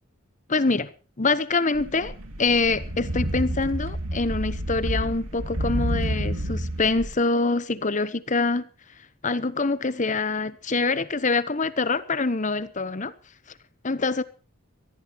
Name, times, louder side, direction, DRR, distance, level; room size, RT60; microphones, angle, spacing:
voice 1, 0.5-0.9 1.2-8.6 9.2-13.1 13.8-14.2, left 3 dB, 35° left, 1.0 m, -25 dB
sound 1, 1.7-7.1, right 1 dB, 90° right, 2.9 m, -29 dB
23.0 x 15.0 x 3.1 m
head